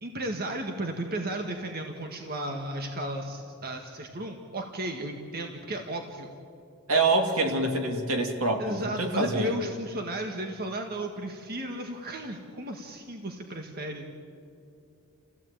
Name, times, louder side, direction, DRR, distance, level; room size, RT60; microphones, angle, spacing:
voice 1, 0.0-6.3 8.6-14.1, right 1 dB, 45° right, 3 dB, 1.7 m, -34 dB
voice 2, 6.9-9.6, right 2 dB, 75° right, 3 dB, 2.9 m, -26 dB
29.5 x 16.0 x 8.9 m, 2.5 s
head